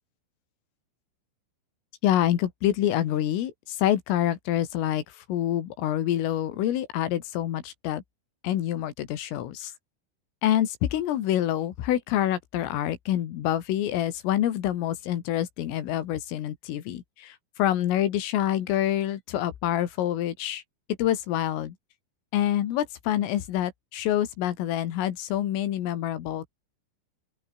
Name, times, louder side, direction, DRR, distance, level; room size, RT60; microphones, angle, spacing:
voice 1, 2.0-8.0 8.4-9.7 10.4-20.6 21.0-21.8 22.3-26.6, left 12 dB, 90° left, 4.8 m, -27 dB
open air
omnidirectional pair, 5.7 m